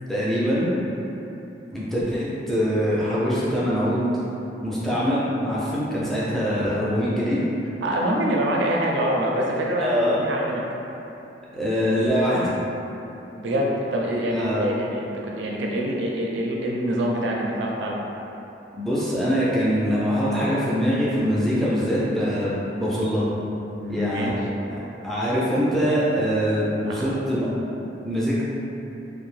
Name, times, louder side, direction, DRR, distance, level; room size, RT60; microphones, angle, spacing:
voice 1, 0.1-0.7 1.7-4.1 4.6-7.4 9.8-10.2 11.5-12.5 14.3-14.7 18.7-23.2 23.9-24.3 24.7-27.5 28.0-28.4, equal, ahead, -9 dB, 0.4 m, -23 dB
voice 2, 7.8-10.6 13.4-18.0 23.7-24.4 26.8-27.1 27.8-27.9, right 1 dB, 85° right, -2 dB, 0.4 m, -25 dB
2.6 x 2.1 x 3.1 m, 3.0 s
head